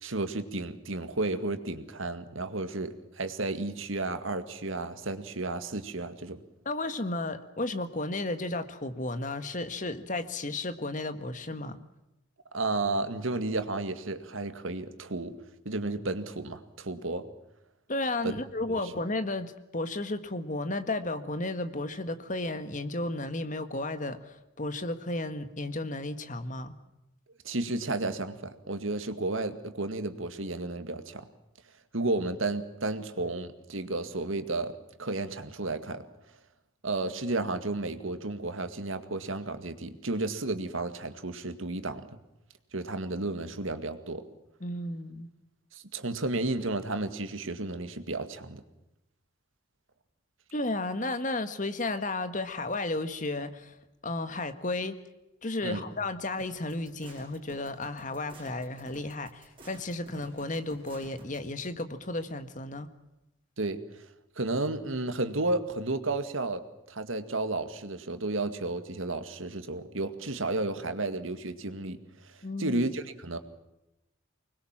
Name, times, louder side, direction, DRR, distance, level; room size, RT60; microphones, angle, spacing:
voice 1, 0.0-6.4 12.5-15.3 15.7-17.3 18.7-18.8 27.4-31.3 31.9-34.7 35.0-36.0 36.8-42.2 42.7-44.2 45.7-48.6 55.6-55.8 63.6-63.8 64.4-66.6 66.9-73.4, right 2 dB, 85° right, 9 dB, 2.0 m, -32 dB
voice 2, 6.6-11.8 17.9-26.8 44.6-45.3 50.5-53.7 54.0-55.0 55.4-62.9 72.4-72.8, left 2 dB, 40° left, 9 dB, 1.7 m, -33 dB
sound 1, 56.4-61.4, right 1 dB, 25° right, 7.7 m, -49 dB
24.5 x 21.0 x 7.4 m, 0.92 s
head